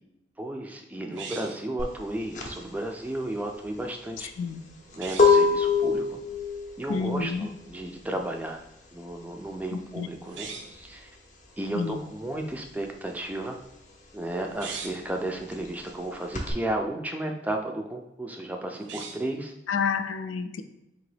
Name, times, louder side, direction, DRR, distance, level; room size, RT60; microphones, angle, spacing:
voice 1, 0.4-4.3 5.0-6.2 6.8-8.6 8.9-11.1 11.6-13.6 14.1-19.5, right 1 dB, 10° right, 3 dB, 0.3 m, -33 dB
sound 1, 1.1-1.7 4.9-5.4 10.2-10.8 14.4-15.1 18.7-19.4, right 5 dB, 75° right, 0.5 m, -40 dB
sound 2, 1.8-12.0 12.3-16.5, left 4 dB, 40° left, 0.6 m, -27 dB
voice 2, 6.9-7.5 9.7-10.1 11.7-12.0 19.7-20.6, left 5 dB, 85° left, 9 dB, 0.4 m, -29 dB
3.8 x 2.9 x 3.2 m, 0.87 s
head